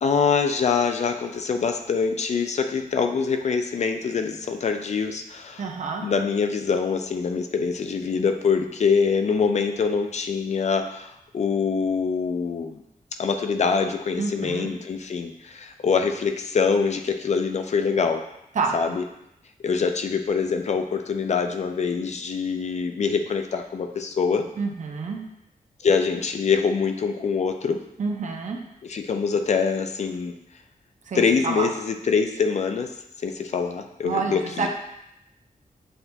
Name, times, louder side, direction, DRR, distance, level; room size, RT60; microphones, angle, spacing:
voice 1, 0.0-5.6 6.0-12.8 13.2-18.2 18.7-19.0 19.6-24.5 25.8-27.8 28.9-30.3 31.1-32.9 33.2-34.7, left 5 dB, 50° left, 6 dB, 0.4 m, -24 dB
voice 2, 5.6-6.1 14.2-14.7 18.5-18.8 24.6-25.2 28.0-28.6 31.1-31.7 34.0-34.7, right 4 dB, 55° right, 2 dB, 0.6 m, -28 dB
7.7 x 2.7 x 2.2 m, 0.82 s
wide cardioid pair, 155°, 15 cm